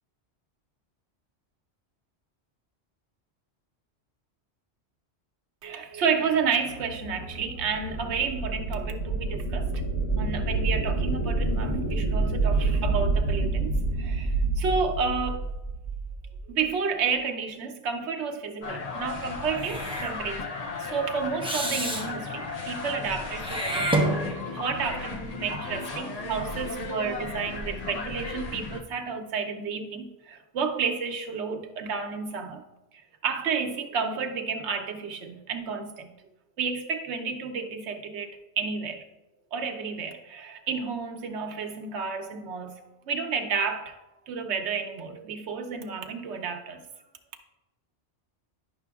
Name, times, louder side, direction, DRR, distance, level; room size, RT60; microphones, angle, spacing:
voice 1, 5.6-9.8 10.2-13.7 14.0-15.5 16.5-20.5 20.8-24.3 24.5-32.6 32.9-36.1 36.6-39.1 39.5-42.8 43.1-44.0 44.3-46.8, right 5 dB, 80° right, 1.0 m, -31 dB
sound 1, 6.3-16.5, right 3 dB, 85° left, 1.6 m, -28 dB
sound 2, 18.6-28.8, left 3 dB, 40° left, 0.7 m, -35 dB
Meow / Hiss, 19.5-20.2 21.4-22.1 23.4-24.6, right 1 dB, 5° right, 0.8 m, -28 dB
10.5 x 5.8 x 2.3 m
omnidirectional pair, 1.1 m